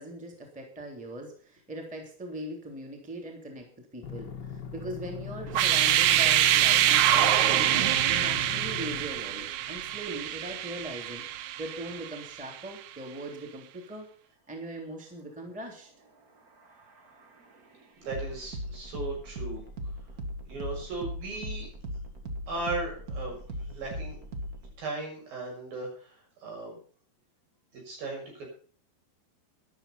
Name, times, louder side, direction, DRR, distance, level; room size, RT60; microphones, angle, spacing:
voice 1, 0.0-11.2 11.6-14.1 14.5-15.9, right 1 dB, ahead, 2 dB, 2.7 m, -40 dB
sound 1, 4.0-9.0, left 8 dB, 50° left, 1.3 m, -39 dB
sound 2, 5.5-12.3, right 12 dB, 85° right, 1.6 m, -25 dB
sound 3, 16.1-24.7, equal, 40° right, 1.4 m, -39 dB
voice 2, 18.0-19.6 20.5-21.7 22.5-23.4 23.7-24.2 24.8-26.1 26.4-26.7 27.9-28.5, right 2 dB, 65° right, 0 dB, 8.1 m, -36 dB
13.0 x 11.5 x 5.8 m, 0.43 s
omnidirectional pair, 4.5 m